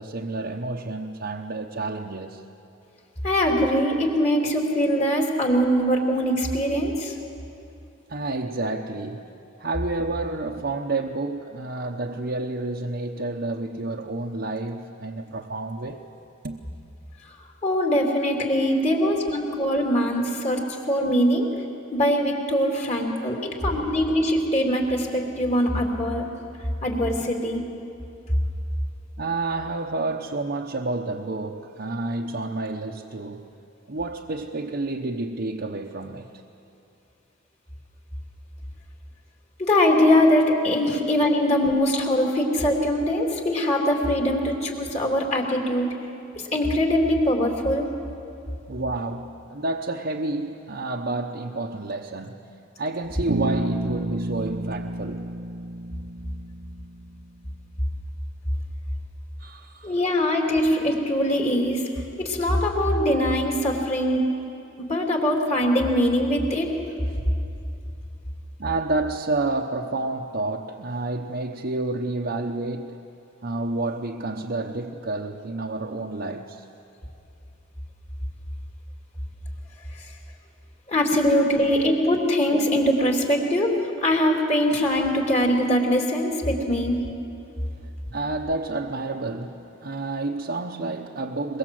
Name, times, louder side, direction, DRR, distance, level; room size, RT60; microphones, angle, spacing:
voice 1, 0.0-2.4 8.1-9.3 9.6-16.0 16.4-16.6 18.6-18.7 29.2-33.5 33.9-36.3 48.7-52.5 52.8-55.3 59.4-60.1 67.0-67.2 68.6-73.0 73.4-76.6 81.1-81.2 81.6-81.8 88.1-91.6, right 2 dB, 55° right, 0 dB, 1.0 m, -30 dB
voice 2, 3.2-7.1 17.6-21.5 21.9-26.3 26.8-27.6 39.6-45.9 46.5-47.9 59.8-61.8 62.2-64.3 64.8-66.8 80.9-83.7 84.0-87.0, equal, 35° left, 0 dB, 3.0 m, -22 dB
Bass guitar, 53.3-57.3, right 1 dB, 75° right, 0.8 m, -30 dB
23.5 x 22.5 x 7.8 m, 2.7 s
head